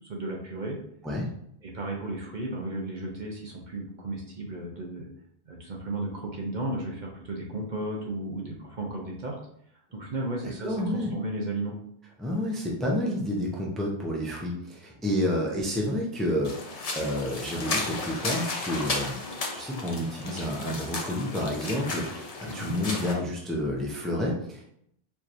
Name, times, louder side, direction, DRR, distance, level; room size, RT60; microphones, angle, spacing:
voice 1, 0.1-0.8 1.6-5.1 5.5-9.4 9.9-11.7 22.5-22.8, right 2 dB, 50° right, -1 dB, 0.8 m, -34 dB
voice 2, 10.4-11.1 12.2-16.5 16.9-19.2 19.5-24.6, left 1 dB, ahead, -2 dB, 0.6 m, -29 dB
sound 1, 16.4-23.1, left 3 dB, 40° left, 0.7 m, -34 dB
4.6 x 2.9 x 2.6 m, 0.69 s
omnidirectional pair, 1.0 m